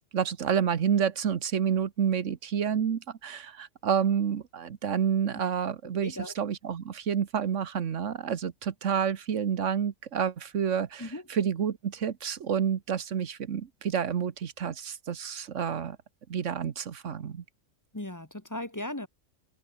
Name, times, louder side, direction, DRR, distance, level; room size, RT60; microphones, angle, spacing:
voice 1, 0.1-16.0 16.3-17.4, right 8 dB, 70° right, 1.4 m, -29 dB
voice 2, 5.9-6.3 11.0-11.2 17.9-19.1, left 1 dB, 15° left, 1.3 m, -37 dB
omnidirectional pair, 1.3 m